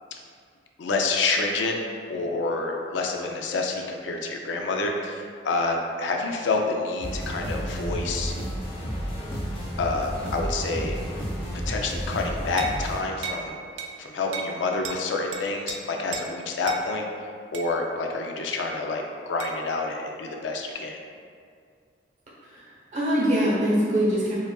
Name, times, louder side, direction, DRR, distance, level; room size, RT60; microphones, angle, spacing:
voice 1, 0.8-1.8 2.1-8.3 9.8-11.0 11.7-13.6 14.0-17.0 17.5-21.0, left 3 dB, 85° left, 1 dB, 0.4 m, -28 dB
sound 1, 7.0-13.0, equal, 30° left, 0.6 m, -31 dB
sound 2, 12.6-12.8 13.2-13.4 13.8-13.9 14.3-14.5 14.8-15.0 15.3-15.8 16.1-16.3 16.7-16.8 17.5-17.7 19.4-19.6, right 6 dB, 80° right, 0.4 m, -34 dB
voice 2, 22.4-24.3, equal, 40° right, -6 dB, 0.9 m, -23 dB
5.0 x 2.4 x 2.3 m, 2.3 s
head